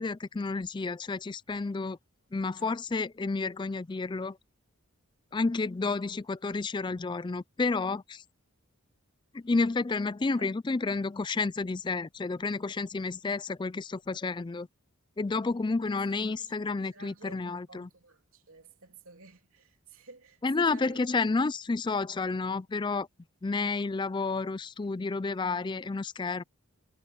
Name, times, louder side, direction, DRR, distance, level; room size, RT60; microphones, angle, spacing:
voice 1, 0.0-2.0 2.3-4.4 5.3-8.2 9.3-14.7 15.2-17.9 20.4-23.1 23.4-26.4, left 3 dB, 20° left, 0.3 m, -30 dB
voice 2, 15.8-21.6, right 4 dB, 70° right, 3.3 m, -53 dB
head